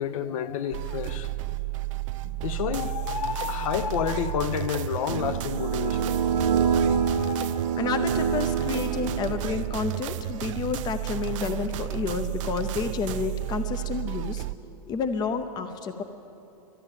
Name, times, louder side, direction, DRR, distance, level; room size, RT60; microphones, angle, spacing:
voice 1, 0.0-1.3 2.2-6.1 6.8-7.8, left 8 dB, 55° left, 0.7 m, -30 dB
sound 1, 0.7-14.5, right 18 dB, 55° right, 0.4 m, -32 dB
sound 2, 5.1-9.7, right 6 dB, 80° right, 1.2 m, -26 dB
voice 2, 7.8-14.4 14.9-16.0, left 5 dB, 20° left, 0.6 m, -30 dB
12.5 x 10.5 x 8.9 m
hypercardioid pair, 135°, 20 cm